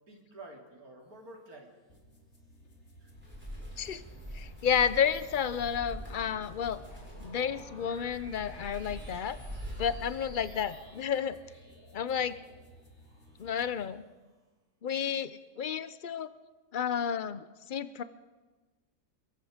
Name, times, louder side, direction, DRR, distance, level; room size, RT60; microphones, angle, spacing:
voice 1, 0.1-2.0 3.0-3.1, right 2 dB, 60° right, 2 dB, 3.3 m, -50 dB
sound 1, 1.9-13.9, equal, 40° left, 2.7 m, -58 dB
Wind, 3.1-10.8, equal, 5° right, 6.9 m, -44 dB
sound 2, 3.4-14.3, right 1 dB, 75° right, 5.2 m, -57 dB
voice 2, 4.3-6.8 7.2-9.4 9.8-11.4 11.9-12.4 13.4-14.0 14.8-16.3 16.7-18.0, left 8 dB, 60° left, 14 dB, 0.5 m, -31 dB
23.0 x 23.0 x 5.1 m, 1.2 s
omnidirectional pair, 1.8 m